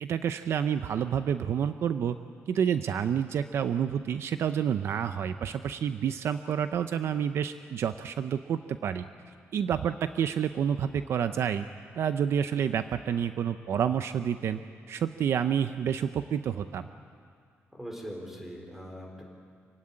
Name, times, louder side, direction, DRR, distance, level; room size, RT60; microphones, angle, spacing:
voice 1, 0.0-2.2 2.5-9.0 9.5-11.6 12.0-14.6 14.9-16.9, right 8 dB, 60° right, 10 dB, 0.6 m, -29 dB
voice 2, 17.7-19.2, equal, 5° right, 1 dB, 3.9 m, -41 dB
26.5 x 16.5 x 9.8 m, 2.2 s
wide cardioid pair, 175°, 5 cm